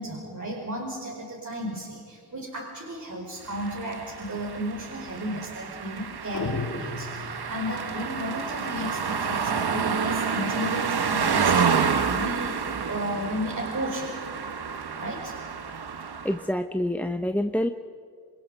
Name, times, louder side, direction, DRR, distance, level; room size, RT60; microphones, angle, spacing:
voice 1, 0.0-14.1 15.0-15.4, equal, 45° right, -3 dB, 5.1 m, -34 dB
sound 1, 3.5-16.5, right 6 dB, 75° right, 1.3 m, -29 dB
sound 2, 6.3-7.8, left 3 dB, 60° left, 2.0 m, -34 dB
voice 2, 16.2-17.7, left 1 dB, 5° left, 8 dB, 0.8 m, -26 dB
28.5 x 26.5 x 5.6 m, 2.1 s
wide cardioid pair, 100°, 39 cm